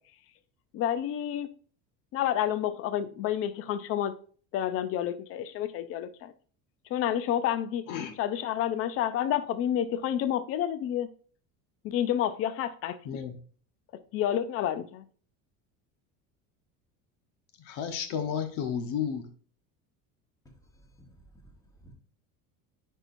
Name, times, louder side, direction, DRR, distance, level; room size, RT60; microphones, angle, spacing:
voice 1, 0.7-1.5 2.1-4.2 4.5-6.3 6.9-7.9 8.2-11.1 11.8-13.2 14.1-15.0, left 10 dB, 40° left, 12 dB, 0.5 m, -29 dB
voice 2, 17.6-19.3, left 8 dB, 65° left, 7 dB, 1.2 m, -32 dB
voice 3, 20.4-21.4 21.8-21.9, right 1 dB, 10° left, 1 dB, 1.3 m, -56 dB
9.8 x 4.6 x 2.6 m, 0.43 s
cardioid pair, 155°, 35 cm